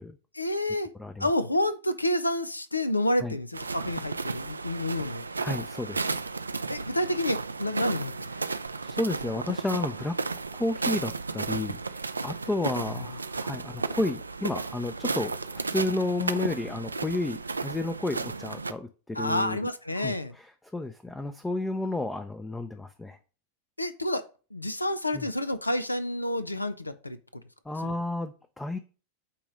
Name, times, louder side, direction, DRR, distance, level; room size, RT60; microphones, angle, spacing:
voice 1, 0.3-0.9 1.2-5.2 6.7-8.1 12.9-13.2 19.1-20.3 23.8-24.2 24.5-27.4 27.8-27.9, left 1 dB, 85° left, 13 dB, 0.5 m, -29 dB
sound 1, 3.5-18.7, right 4 dB, 80° right, 0.4 m, -33 dB
voice 2, 5.4-6.2 8.4-10.2 10.5-19.6 20.0-23.2 25.1-25.3 27.7-28.8, left 2 dB, 10° left, 9 dB, 0.5 m, -32 dB
8.5 x 3.0 x 5.0 m, 0.37 s
figure-of-eight pair, 90°, 0 cm